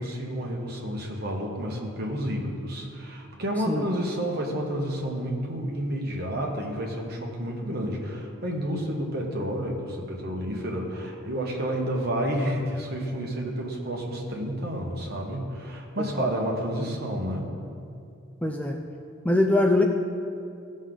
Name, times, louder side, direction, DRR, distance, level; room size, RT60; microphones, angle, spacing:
voice 1, 0.0-17.5, equal, 50° right, -1 dB, 1.5 m, -30 dB
voice 2, 18.4-18.8 19.2-19.8, left 2 dB, 5° left, 2 dB, 0.4 m, -23 dB
16.0 x 6.4 x 3.9 m, 2.5 s
head